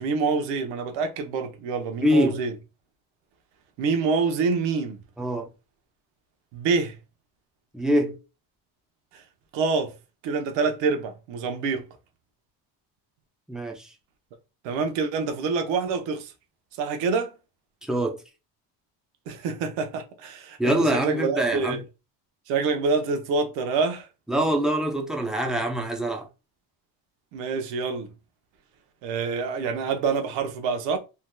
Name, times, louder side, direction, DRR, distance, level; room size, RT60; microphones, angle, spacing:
voice 1, 0.0-2.5 3.8-5.0 6.5-7.0 9.1-9.2 9.5-9.9 10.2-11.9 14.6-16.3 16.8-17.3 19.3-21.8 22.5-24.1 27.3-28.1 29.0-31.0, right 4 dB, 80° right, 0.9 m, -26 dB
voice 2, 2.0-2.4 5.2-5.5 7.7-8.2 13.5-13.9 17.8-18.2 20.6-21.8 24.3-26.3, equal, ahead, 0.5 m, -24 dB
3.4 x 2.9 x 2.2 m
cardioid pair, 125°, 43 cm